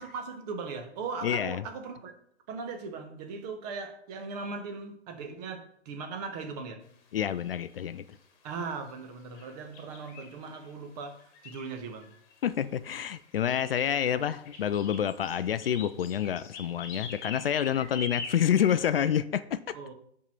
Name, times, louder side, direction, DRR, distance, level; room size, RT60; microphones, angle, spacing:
voice 1, 0.0-2.1 2.5-6.8 8.4-12.1 19.7-19.9, right 4 dB, 35° right, 6 dB, 1.4 m, -39 dB
voice 2, 1.2-1.6 7.1-8.0 12.4-19.6, left 9 dB, 55° left, 14 dB, 0.5 m, -28 dB
sound 1, 7.2-7.7 9.0-9.1 9.3-10.7 11.2-12.5 13.2-19.1, left 4 dB, 30° left, 1.6 m, -44 dB
7.3 x 4.9 x 5.8 m, 0.67 s
figure-of-eight pair, 120°, 35 cm